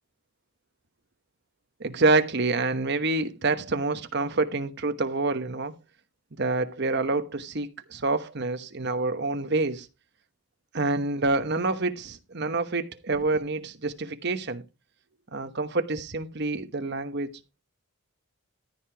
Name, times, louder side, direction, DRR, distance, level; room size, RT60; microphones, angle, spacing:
voice 1, 1.8-5.7 6.4-9.9 10.7-14.6 15.3-17.3, right 3 dB, 50° right, 1.1 m, -27 dB
14.0 x 4.7 x 5.0 m
head